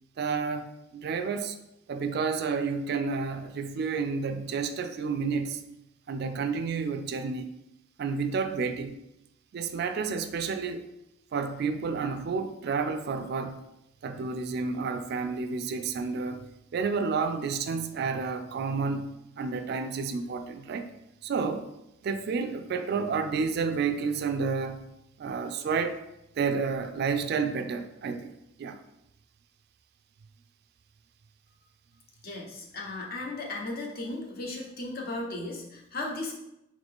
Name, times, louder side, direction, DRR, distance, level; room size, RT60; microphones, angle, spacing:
voice 1, 0.2-1.6 1.9-5.6 6.1-7.5 8.0-9.0 9.5-10.8 11.3-13.6 14.0-16.4 16.7-20.9 21.2-21.7 22.0-24.8 25.2-26.0 26.4-28.8, right 5 dB, 55° right, 0.3 m, -30 dB
voice 2, 32.2-36.3, left 2 dB, 55° left, 0.9 m, -36 dB
3.8 x 3.2 x 3.6 m
head